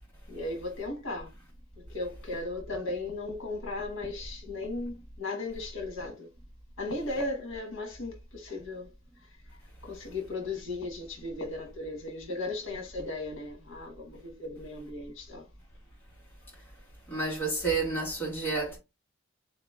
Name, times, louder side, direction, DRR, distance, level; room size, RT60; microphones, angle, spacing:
voice 1, 0.3-1.3 1.9-6.3 6.8-8.9 9.8-15.4, left 2 dB, 65° left, 1.2 m, -36 dB
voice 2, 17.1-18.8, right 3 dB, 10° left, 1.8 m, -30 dB
3.9 x 2.9 x 3.5 m
head